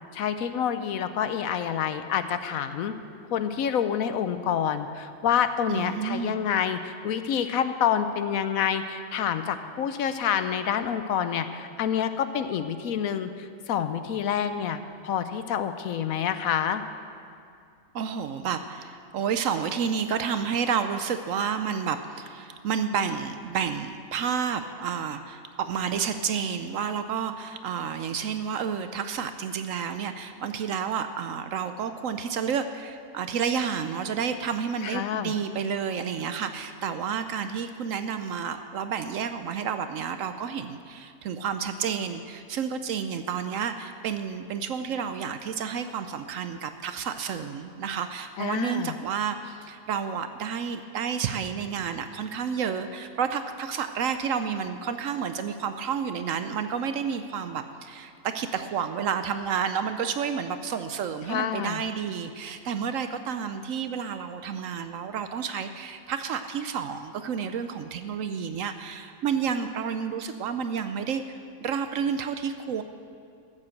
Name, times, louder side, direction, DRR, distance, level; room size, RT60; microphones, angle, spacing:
voice 1, 0.1-2.9 3.3-16.8 34.8-35.3 48.4-48.9 61.3-61.8, left 8 dB, 70° left, 10 dB, 1.0 m, -27 dB
voice 2, 5.7-6.4 17.9-72.8, right 7 dB, 70° right, 9 dB, 0.9 m, -30 dB
13.5 x 7.5 x 7.7 m, 2.4 s
omnidirectional pair, 1.6 m